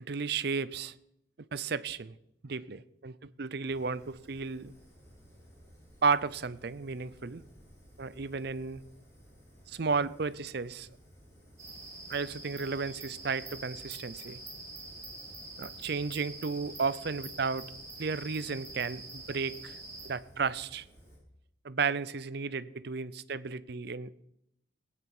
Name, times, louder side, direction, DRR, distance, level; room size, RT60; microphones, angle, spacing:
voice 1, 0.1-0.9 1.5-2.1 2.4-4.7 6.0-7.4 8.0-8.8 9.7-10.9 12.1-14.4 15.6-17.7 18.0-19.8 20.0-20.9 21.6-24.1, right 5 dB, 55° right, 0.6 m, -33 dB
Fire, 3.7-21.2, equal, 15° left, 5.6 m, -57 dB
sound 1, 11.6-20.1, right 2 dB, 15° right, 5.6 m, -46 dB
18.0 x 9.3 x 6.1 m
head